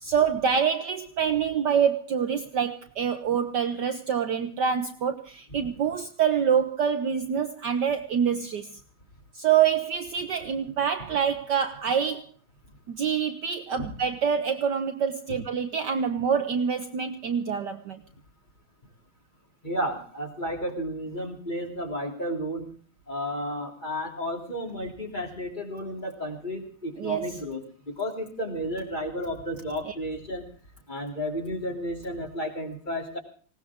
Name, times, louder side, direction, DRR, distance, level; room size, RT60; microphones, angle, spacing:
voice 1, 0.0-8.7 9.3-12.2 12.9-18.0 27.0-27.4 29.8-29.9, right 7 dB, 60° right, 7 dB, 1.3 m, -26 dB
voice 2, 19.6-22.7 23.1-30.4 30.9-33.2, equal, 20° left, 1 dB, 3.0 m, -32 dB
19.5 x 18.0 x 3.6 m, 0.43 s
omnidirectional pair, 2.4 m